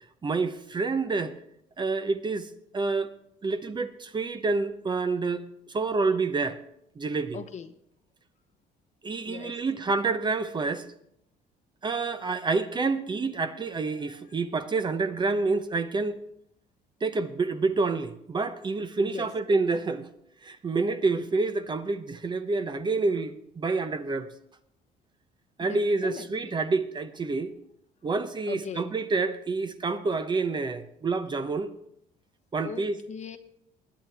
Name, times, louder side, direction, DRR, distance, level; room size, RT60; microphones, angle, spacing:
voice 1, 0.2-1.4 1.8-3.1 3.4-6.6 7.0-7.4 9.0-10.8 11.8-16.2 17.0-20.1 20.4-24.3 25.6-27.5 28.0-31.7 32.5-33.0, right 3 dB, 25° right, 0.8 m, -28 dB
voice 2, 7.3-7.7 9.2-9.6 19.0-19.3 25.6-26.6 28.5-28.9 32.6-33.4, left 7 dB, 45° left, 1.0 m, -39 dB
20.5 x 9.1 x 3.4 m
cardioid pair, 110°, 17 cm